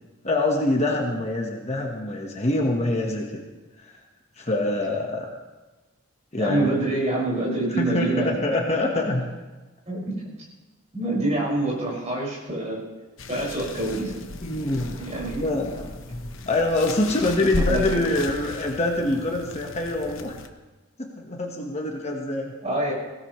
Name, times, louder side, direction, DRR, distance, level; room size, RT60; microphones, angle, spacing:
voice 1, 0.2-3.4 3.8-3.9 4.4-5.3 6.3-6.8 7.8-9.3 14.4-20.4 21.0-22.5, left 2 dB, 30° left, 0 dB, 1.3 m, -25 dB
voice 2, 6.3-8.3 9.9-10.3 10.9-12.8 13.3-14.2 14.8-15.4 17.6-18.0 22.6-22.9, right 2 dB, 30° right, -5 dB, 5.7 m, -26 dB
sound 1, 13.2-20.5, left 2 dB, 65° left, 1.0 m, -35 dB
20.5 x 17.0 x 3.2 m, 1.2 s
head